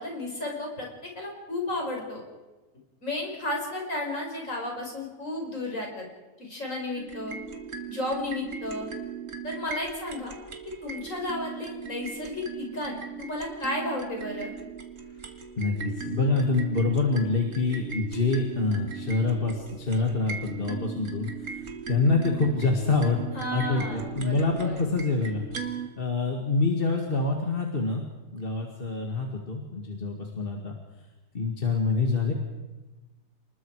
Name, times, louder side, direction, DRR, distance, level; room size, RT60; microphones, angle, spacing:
voice 1, 0.0-2.2 3.0-6.1 6.4-7.4 7.9-8.9 9.4-10.4 10.7-14.5 23.3-24.8, left 2 dB, 50° left, 0 dB, 5.6 m, -33 dB
sound 1, 7.0-25.9, right 6 dB, 50° right, 2.1 m, -38 dB
voice 2, 15.6-23.2 23.5-25.5 26.0-28.0 28.3-30.8 31.3-32.3, left 3 dB, 35° left, 1 dB, 2.2 m, -26 dB
29.5 x 20.5 x 4.8 m, 1.2 s
omnidirectional pair, 1.7 m